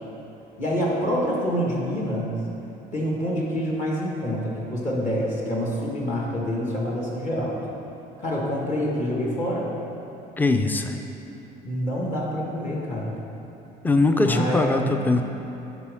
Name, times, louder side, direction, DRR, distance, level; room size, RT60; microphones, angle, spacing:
voice 1, 0.6-2.4 2.9-7.6 8.2-9.7 11.6-13.1 14.2-15.2, equal, 45° left, -3 dB, 1.7 m, -26 dB
voice 2, 10.4-11.0 13.8-15.2, left 2 dB, 10° left, 6 dB, 0.5 m, -21 dB
9.7 x 5.3 x 3.6 m, 2.9 s
supercardioid pair, 85°, 18 cm